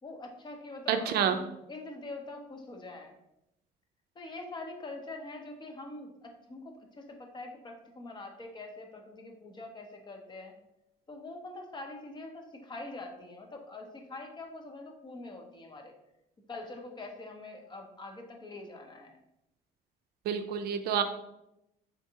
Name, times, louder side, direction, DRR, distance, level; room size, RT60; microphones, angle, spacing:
voice 1, 0.0-1.4 1.7-3.2 4.1-10.6 11.1-15.9 16.5-19.2, left 2 dB, 25° left, 3 dB, 0.7 m, -44 dB
voice 2, 0.9-1.4 20.3-21.0, right 8 dB, 70° right, 8 dB, 0.4 m, -28 dB
3.8 x 3.4 x 2.7 m, 0.84 s
cardioid pair, 110°, 17 cm